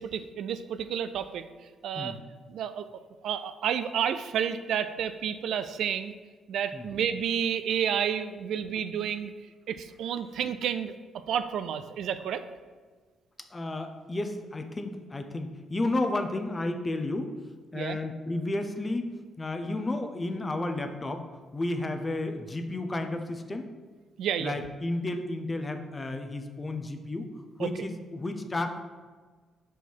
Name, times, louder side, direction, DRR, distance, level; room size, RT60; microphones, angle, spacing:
voice 1, 0.0-1.4 1.8-2.2 2.5-2.9 3.2-6.1 6.5-9.3 9.7-10.9 11.3-12.4 17.7-18.0 24.2-24.6 27.6-27.7, right 8 dB, 75° right, 11 dB, 0.3 m, -30 dB
voice 2, 13.5-17.3 17.7-19.1 19.4-21.2 21.5-23.7 24.4-27.3 27.6-28.8, left 2 dB, 25° left, 6 dB, 0.6 m, -32 dB
5.3 x 4.6 x 4.5 m, 1.4 s
cardioid pair, 90°, 0 cm